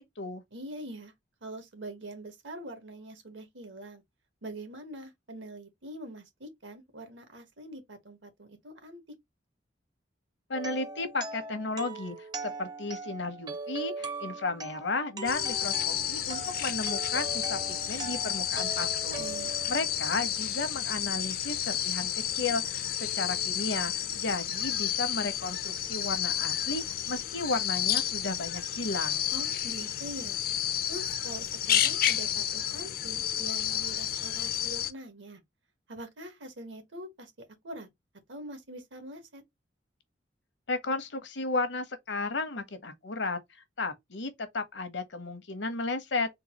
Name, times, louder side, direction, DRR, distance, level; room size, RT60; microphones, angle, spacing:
voice 1, 0.5-1.1 1.4-4.0 4.4-9.0 19.2-19.5 29.3-30.4 30.9-35.4 35.9-37.3 37.6-37.9 38.3-39.4, right 1 dB, 80° right, 1.2 m, -44 dB
voice 2, 10.5-12.2 12.4-17.6 17.9-19.3 19.7-29.3 40.7-43.4 43.8-46.4, left 3 dB, 70° left, 0.9 m, -34 dB
sound 1, 10.5-20.4, right 3 dB, 20° right, 0.5 m, -40 dB
sound 2, 15.3-34.9, left 10 dB, 50° left, 0.4 m, -31 dB
3.9 x 2.3 x 2.9 m
head